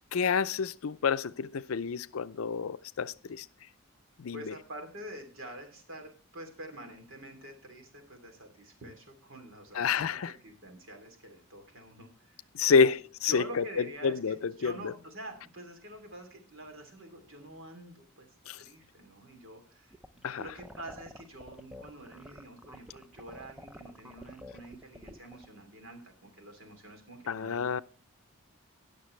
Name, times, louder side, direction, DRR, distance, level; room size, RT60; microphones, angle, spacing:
voice 1, 0.1-3.5 4.2-4.5 9.7-10.3 12.5-14.9 18.5-18.6 20.2-20.5 27.3-27.8, left 5 dB, 80° left, 0.5 m, -29 dB
voice 2, 4.3-12.9 13.2-18.3 18.6-27.7, right 1 dB, 70° right, 3.1 m, -47 dB
sound 1, 19.9-25.5, left 1 dB, 5° right, 0.5 m, -49 dB
19.5 x 6.7 x 3.2 m
head